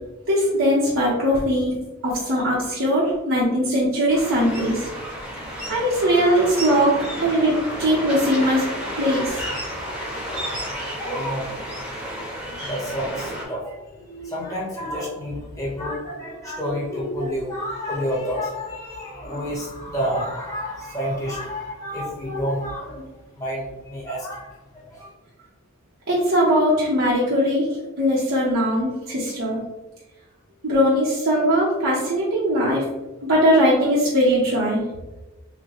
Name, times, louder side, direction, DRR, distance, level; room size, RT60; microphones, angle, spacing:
voice 1, 0.3-1.7 2.0-4.9 5.7-8.6 9.0-9.4 26.1-27.7 28.0-29.6 30.6-32.8 33.3-34.8, equal, 65° right, -6 dB, 0.9 m, -20 dB
sound 1, 4.1-13.4, equal, 5° right, 0.9 m, -31 dB
voice 2, 10.4-11.5 12.6-23.1 23.3-25.1, equal, 15° left, -5 dB, 1.1 m, -29 dB
5.8 x 2.2 x 3.0 m, 1.1 s
head